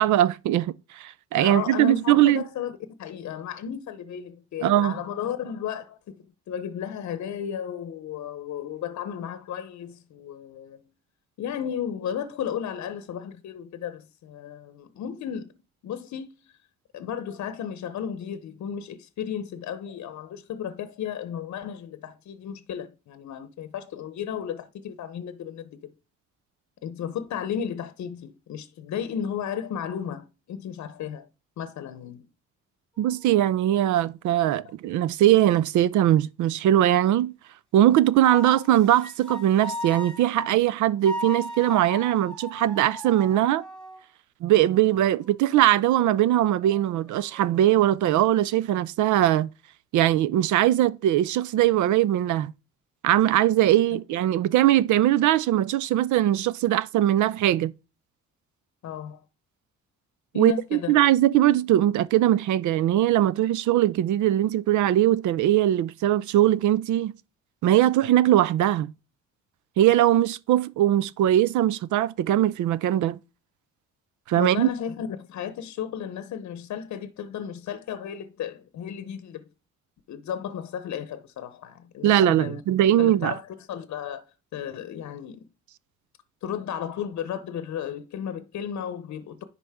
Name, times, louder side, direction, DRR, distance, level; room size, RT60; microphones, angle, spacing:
voice 1, 0.0-2.4 4.6-5.0 33.0-37.3 37.7-43.6 44.4-49.5 49.9-52.5 53.0-57.7 60.3-67.1 67.6-68.9 69.8-73.2 74.3-74.7 82.0-83.3, right 12 dB, 75° right, 0.5 m, -21 dB
voice 2, 1.4-2.7 3.0-10.8 11.4-15.5 15.8-16.5 16.9-25.9 26.8-31.3 31.6-32.2 53.9-54.0 58.8-59.2 60.3-61.0 74.4-79.5 80.1-82.6 83.0-84.2 84.5-85.4 86.4-89.4, left 8 dB, 65° left, 0.8 m, -34 dB
sound 1, 33.0-33.6 38.2-40.5 41.0-44.0 44.7-47.9, equal, ahead, 2.1 m, -39 dB
10.0 x 4.1 x 3.5 m
cardioid pair, 90°, 30 cm